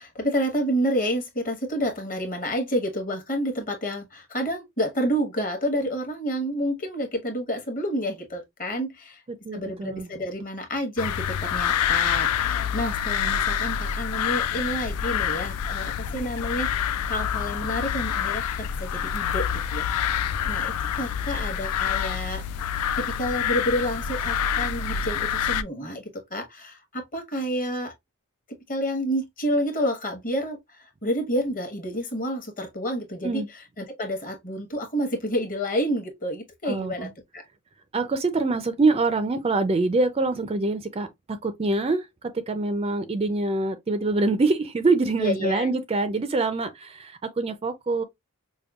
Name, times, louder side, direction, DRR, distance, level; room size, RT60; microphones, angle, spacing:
voice 1, 0.0-9.2 9.5-20.2 20.4-22.4 23.0-27.9 28.7-37.4 45.2-45.7, equal, 35° left, 1.0 m, -29 dB
voice 2, 9.4-10.1 33.2-33.5 36.6-37.1 37.9-41.1 41.4-42.1 42.3-48.0, right 3 dB, 25° right, 0.4 m, -25 dB
sound 1, 11.0-25.6, left 8 dB, 85° left, 0.3 m, -27 dB
5.2 x 2.1 x 2.3 m
head